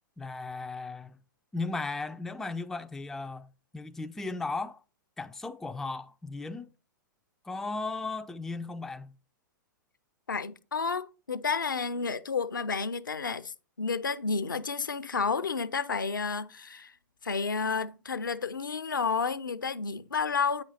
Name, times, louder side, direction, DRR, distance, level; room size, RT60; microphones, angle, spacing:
voice 1, 0.2-1.2 1.5-3.5 3.7-4.8 5.2-6.7 7.4-9.1, left 3 dB, 5° left, 0.3 m, -36 dB
voice 2, 10.3-16.9 17.2-20.6, left 5 dB, 75° left, 0.6 m, -31 dB
8.5 x 5.3 x 4.0 m
figure-of-eight pair, 105°, 11 cm